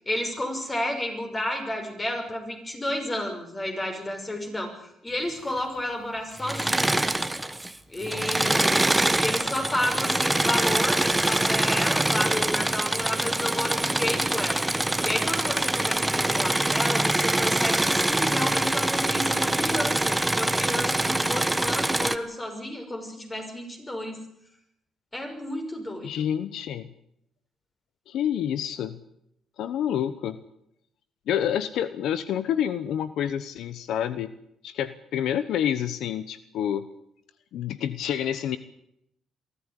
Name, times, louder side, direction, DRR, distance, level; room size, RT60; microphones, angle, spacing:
voice 1, 0.1-7.0 7.9-14.7 15.0-24.2 25.1-26.3, left 1 dB, 20° left, 4 dB, 6.2 m, -31 dB
Engine / Mechanisms, 6.4-7.7 8.0-22.2, right 1 dB, 10° right, 1.2 m, -24 dB
voice 2, 26.0-26.9 28.1-29.0 29.6-30.4 31.3-34.3 34.6-36.8 37.5-38.6, left 9 dB, 80° left, 14 dB, 1.0 m, -28 dB
23.0 x 14.5 x 9.9 m, 0.77 s
cardioid pair, 90°, 0 cm